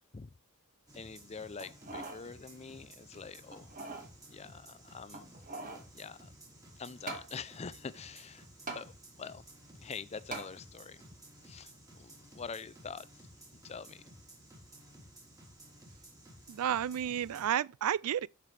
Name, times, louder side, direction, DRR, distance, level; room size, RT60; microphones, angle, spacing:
voice 1, 0.9-3.7 4.3-5.4 5.9-6.3 6.8-8.5 8.7-9.4 9.8-11.0 11.4-13.3 13.6-14.1, left 5 dB, 30° left, 0.4 m, -45 dB
sound 1, 0.9-17.5, right 1 dB, 15° right, 3.5 m, -55 dB
sound 2, 1.6-2.2 2.7-2.8 3.5-4.1 5.1-5.9 7.1-7.3 8.7-8.8 10.3-10.5 11.1-11.2, right 3 dB, 40° right, 1.8 m, -42 dB
voice 2, 16.5-18.3, right 10 dB, 80° right, 0.3 m, -31 dB
12.0 x 5.8 x 3.3 m
head